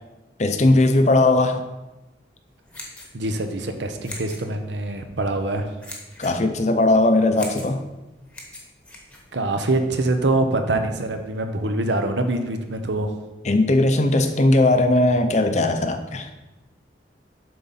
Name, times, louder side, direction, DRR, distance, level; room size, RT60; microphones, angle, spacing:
voice 1, 0.4-1.7 6.2-7.8 13.4-16.3, left 2 dB, 40° left, 8 dB, 0.6 m, -18 dB
sound 1, 2.5-9.8, left 1 dB, 5° left, 1.0 m, -42 dB
voice 2, 3.1-5.7 9.3-13.1, right 2 dB, 75° right, 6 dB, 0.8 m, -24 dB
7.7 x 3.9 x 5.6 m, 1.1 s
head